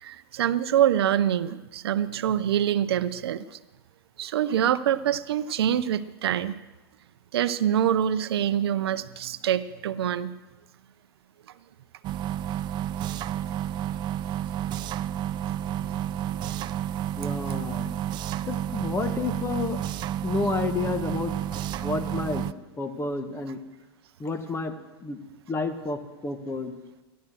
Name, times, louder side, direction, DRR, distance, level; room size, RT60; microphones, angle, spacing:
voice 1, 0.0-3.6 4.2-6.5 7.3-10.3 15.5-16.0 16.3-16.5, right 10 dB, 75° right, 14 dB, 0.7 m, -25 dB
sound 1, 12.0-22.5, right 11 dB, 35° right, 0.4 m, -31 dB
voice 2, 17.2-17.9 18.5-19.8 20.2-23.6 24.2-24.7 25.0-25.2 25.5-26.7, left 4 dB, 20° left, 9 dB, 1.4 m, -30 dB
15.0 x 11.0 x 6.3 m, 1.1 s
hypercardioid pair, 105°, 13 cm